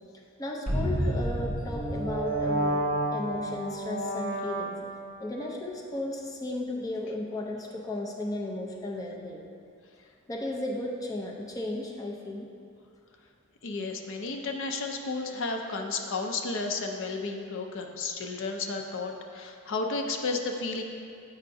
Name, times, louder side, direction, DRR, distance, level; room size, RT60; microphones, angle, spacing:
voice 1, 0.4-2.8 3.1-4.9 5.2-9.5 10.3-12.5, left 1 dB, 15° left, -2 dB, 0.5 m, -34 dB
sound 1, 0.7-5.1, right 1 dB, 40° left, 1.1 m, -30 dB
voice 2, 13.6-20.8, left 3 dB, 65° left, 3 dB, 0.5 m, -32 dB
8.5 x 5.5 x 2.6 m, 2.4 s
head